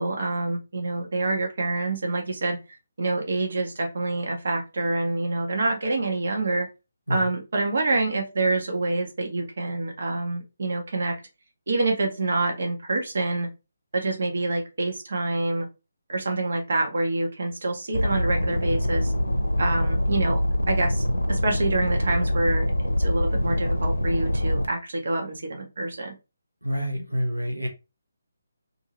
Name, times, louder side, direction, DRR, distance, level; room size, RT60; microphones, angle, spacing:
voice 1, 0.0-2.6 3.0-6.7 7.1-11.2 11.7-13.5 13.9-15.7 16.1-19.1 19.6-20.4 20.7-22.7 23.0-26.1, right 2 dB, 55° right, 0.8 m, -26 dB
sound 1, 17.9-24.7, left 1 dB, 80° left, 0.6 m, -24 dB
voice 2, 26.6-27.7, equal, 90° right, 0.8 m, -27 dB
2.7 x 2.5 x 2.9 m
figure-of-eight pair, 145°, 0 cm